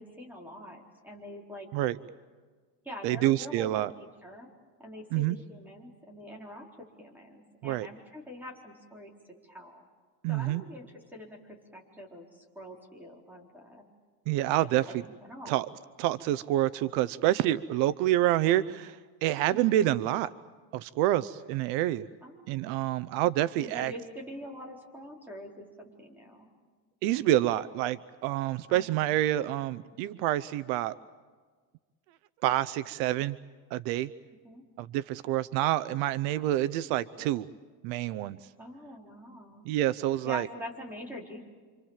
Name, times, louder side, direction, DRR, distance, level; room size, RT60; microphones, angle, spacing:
voice 1, 0.0-1.7 2.8-3.8 4.2-4.5 4.8-9.1 9.5-9.8 10.3-13.8 14.8-14.9 15.2-15.6 19.5-19.8 22.2-22.7 23.6-26.5 28.7-28.8 34.4-34.6 38.6-39.7 40.2-41.4, equal, 5° right, -1 dB, 4.2 m, -44 dB
voice 2, 3.0-3.9 5.1-5.4 7.6-7.9 10.2-10.6 14.3-15.0 15.5-15.7 16.0-20.3 20.7-22.0 22.5-23.9 27.0-30.9 32.4-33.4 33.7-34.1 34.8-37.5 37.8-38.4 39.6-40.5, right 14 dB, 70° right, 16 dB, 0.8 m, -27 dB
29.0 x 25.5 x 7.4 m, 1.5 s
cardioid pair, 170°, 46 cm